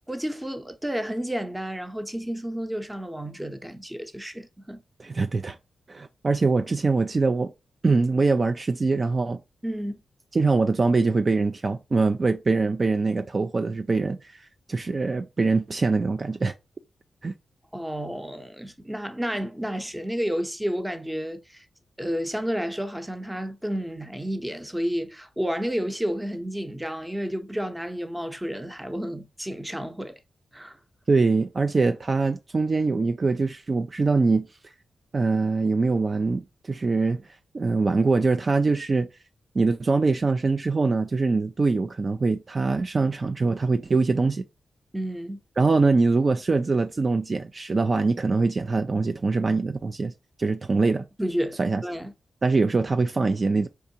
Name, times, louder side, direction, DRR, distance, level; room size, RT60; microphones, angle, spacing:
voice 1, 0.1-4.8 9.6-10.0 17.7-21.6 22.0-30.1 30.5-30.8 44.9-45.4 51.2-52.1, equal, 10° right, 0.7 m, -31 dB
voice 2, 5.0-5.6 5.9-7.5 7.8-9.4 10.3-14.4 14.7-16.5 17.2-17.3 31.1-34.5 35.1-39.1 39.5-44.4 45.6-50.1 50.4-51.1 51.6-51.8 52.4-53.7, right 3 dB, 45° right, 0.3 m, -23 dB
4.6 x 2.5 x 2.7 m
supercardioid pair, 45°, 0 cm